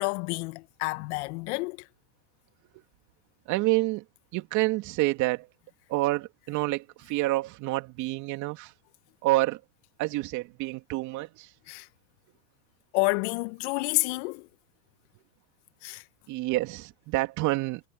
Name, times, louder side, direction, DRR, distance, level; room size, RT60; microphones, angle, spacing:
voice 1, 0.0-1.8 11.7-11.9 12.9-14.5 15.8-16.0, left 26 dB, 55° left, 1.4 m, -29 dB
voice 2, 3.5-4.0 4.3-5.5 5.9-8.7 9.2-9.6 10.0-11.5 16.3-17.8, right 19 dB, 45° right, 2.9 m, -28 dB
hypercardioid pair, 120°, 40 cm